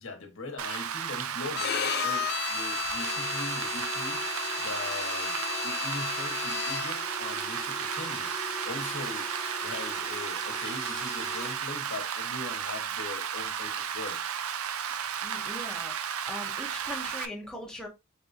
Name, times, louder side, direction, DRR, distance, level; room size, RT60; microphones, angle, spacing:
voice 1, 0.0-8.3 8.6-14.2, left 2 dB, 65° left, 1.1 m, -41 dB
Rain, 0.6-17.3, right 8 dB, 80° right, 0.5 m, -34 dB
Bowed string instrument, 1.5-7.1, left 10 dB, 45° left, 0.3 m, -34 dB
sound 1, 3.0-11.6, left 4 dB, 30° left, 1.0 m, -42 dB
voice 2, 15.2-16.0 16.3-17.9, left 1 dB, 5° left, 0.8 m, -40 dB
4.9 x 3.6 x 2.6 m
head